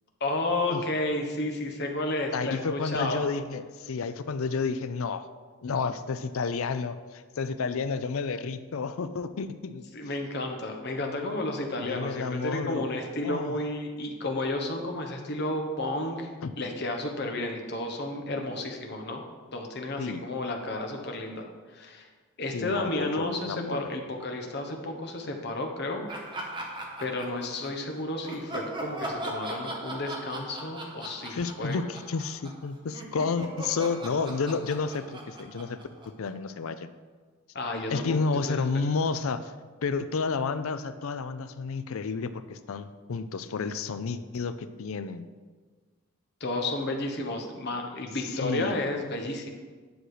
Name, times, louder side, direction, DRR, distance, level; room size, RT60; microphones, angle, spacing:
voice 1, 0.2-3.2 9.9-16.3 16.6-19.2 19.5-22.1 22.4-26.0 26.5-26.7 27.0-31.8 37.5-38.2 38.5-38.7 46.4-49.5, left 2 dB, 50° left, 3 dB, 1.2 m, -32 dB
voice 2, 2.3-5.3 5.6-9.9 11.8-12.9 13.2-13.6 16.4-16.5 20.0-20.2 22.5-23.9 31.3-35.8 36.1-36.9 37.9-39.5 39.8-45.2 48.4-48.8, left 4 dB, 75° left, 12 dB, 0.5 m, -31 dB
Laughter, 26.1-27.8 28.2-32.6 32.9-36.5, right 1 dB, 20° right, 1.2 m, -39 dB
10.0 x 6.3 x 5.0 m, 1.4 s
head